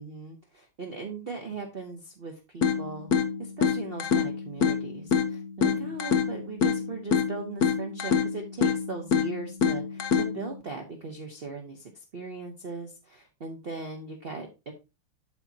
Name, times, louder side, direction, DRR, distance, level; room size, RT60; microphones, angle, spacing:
voice 1, 0.0-14.7, right 4 dB, 45° right, 3 dB, 0.7 m, -39 dB
sound 1, 2.6-10.6, left 6 dB, 55° left, 1.1 m, -27 dB
12.0 x 4.6 x 2.8 m, 0.27 s
omnidirectional pair, 2.3 m